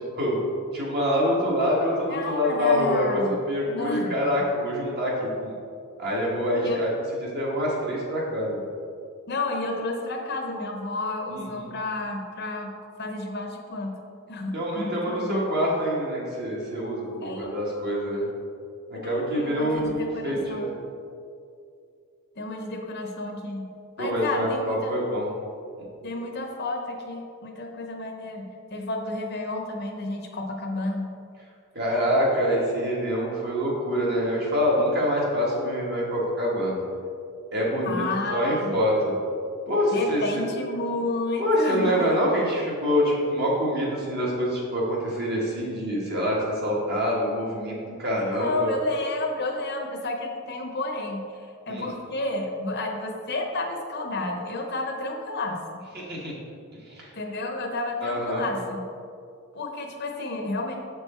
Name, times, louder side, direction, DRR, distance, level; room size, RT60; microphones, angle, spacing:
voice 1, 0.7-5.5 6.0-6.9 7.2-8.6 11.3-11.7 14.5-18.2 18.9-20.7 24.0-25.3 31.7-36.8 37.5-38.0 38.3-39.1 39.7-40.2 41.4-47.7 48.0-48.7 51.7-51.9 55.9-56.3 56.9-57.1 58.0-58.5, equal, 50° right, -4 dB, 1.6 m, -25 dB
voice 2, 2.1-3.3 3.7-4.5 6.6-6.8 9.3-12.7 13.0-14.0 14.3-15.4 17.2-17.6 19.0-20.7 22.4-23.7 24.0-25.0 26.0-31.1 37.8-38.8 39.9-42.2 48.3-55.6 57.2-58.8 59.5-60.8, left 2 dB, 50° left, 3 dB, 0.7 m, -31 dB
7.2 x 4.7 x 4.4 m, 2.5 s
head